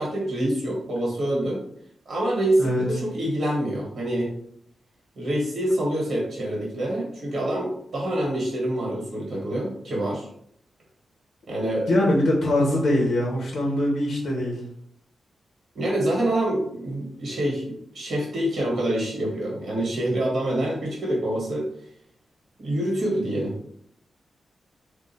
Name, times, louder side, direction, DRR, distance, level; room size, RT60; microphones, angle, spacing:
voice 1, 0.0-1.6 2.1-4.3 5.2-10.3 11.5-11.9 15.7-21.7 22.6-23.5, right 1 dB, 60° right, -3 dB, 1.2 m, -26 dB
voice 2, 11.9-14.6, left 1 dB, 85° left, -3 dB, 1.0 m, -22 dB
3.6 x 2.4 x 4.1 m, 0.70 s
wide cardioid pair, 175°, 0 cm